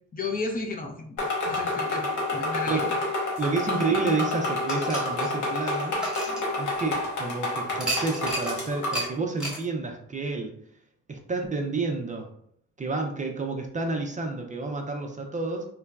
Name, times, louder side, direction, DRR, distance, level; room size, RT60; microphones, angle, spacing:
voice 1, 0.1-1.2 1.5-2.8, left 3 dB, 30° left, 2 dB, 0.5 m, -33 dB
sound 1, 1.2-9.1, left 2 dB, 80° left, 1.0 m, -29 dB
voice 2, 3.4-6.0 6.6-10.5 11.1-12.3 12.8-15.7, right 3 dB, 25° right, 2 dB, 0.4 m, -30 dB
sound 2, 4.7-7.1 7.8-8.6 8.9-9.1 9.4-9.6, right 1 dB, ahead, 0.9 m, -33 dB
3.8 x 2.1 x 2.3 m, 0.66 s
cardioid pair, 90°, 30 cm